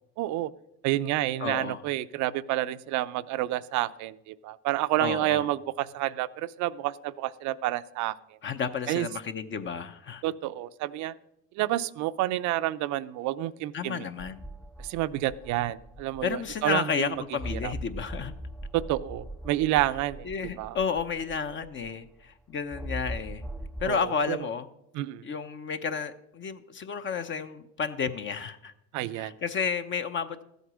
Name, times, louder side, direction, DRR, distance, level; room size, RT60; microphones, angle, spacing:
voice 1, 0.2-0.5 0.8-8.1 8.9-9.1 10.2-11.1 11.6-14.1 14.8-16.9 17.6-17.7 18.7-20.3 20.6-20.8 23.8-24.0 24.3-24.4 24.9-25.3 28.9-29.3, right 15 dB, 70° right, 14 dB, 0.6 m, -29 dB
voice 2, 1.4-1.8 5.0-5.5 8.4-10.2 13.7-14.5 16.2-18.3 20.2-23.4 23.8-24.7 25.2-28.7 29.1-30.4, left 6 dB, 40° left, 9 dB, 0.8 m, -32 dB
sound 1, 14.2-16.8 17.4-22.1 22.7-23.9, right 1 dB, ahead, 0.4 m, -40 dB
13.5 x 8.0 x 6.2 m, 0.81 s
cardioid pair, 105°, 30 cm